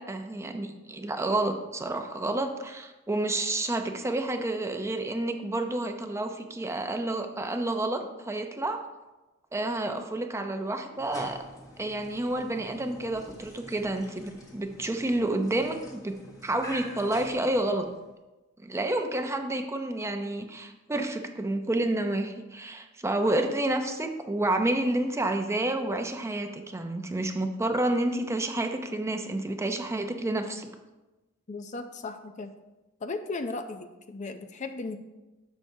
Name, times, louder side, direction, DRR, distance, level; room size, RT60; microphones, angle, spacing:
voice 1, 0.0-8.8 9.5-11.4 11.8-16.1 16.4-17.9 18.6-30.7, right 2 dB, 15° right, 5 dB, 0.6 m, -29 dB
sound 1, 10.9-18.1, left 1 dB, 20° left, 1.2 m, -46 dB
voice 2, 31.5-32.5 33.0-35.0, left 3 dB, 35° left, 8 dB, 0.5 m, -36 dB
11.0 x 6.9 x 2.7 m, 1.1 s
head